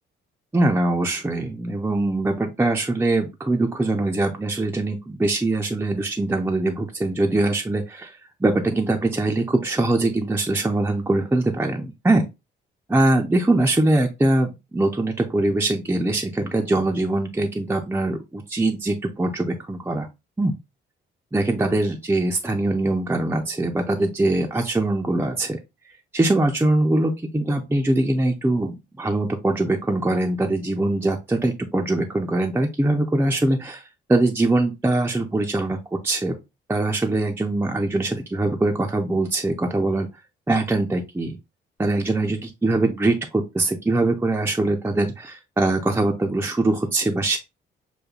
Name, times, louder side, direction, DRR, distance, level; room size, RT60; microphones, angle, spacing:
voice 1, 0.5-8.1 8.4-12.2 12.9-20.1 20.4-20.5 21.3-25.6 26.1-33.8 34.1-35.8 36.0-36.4 36.7-40.1 40.5-41.4 41.8-47.4, right 2 dB, 10° right, 2 dB, 0.6 m, -22 dB
6.6 x 2.2 x 2.3 m, 0.24 s
cardioid pair, 90°, 20 cm